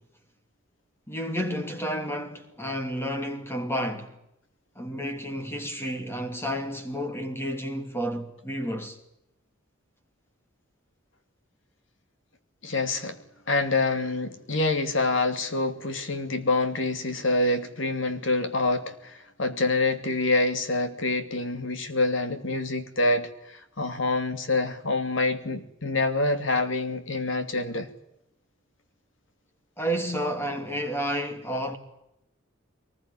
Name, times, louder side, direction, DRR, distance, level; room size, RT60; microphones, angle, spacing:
voice 1, 1.1-4.1 4.8-9.0 29.8-31.8, equal, 10° left, 2.8 m, -31 dB
voice 2, 12.6-13.2 13.5-27.9, left 2 dB, 65° left, 2.8 m, -26 dB
23.0 x 20.0 x 10.0 m
head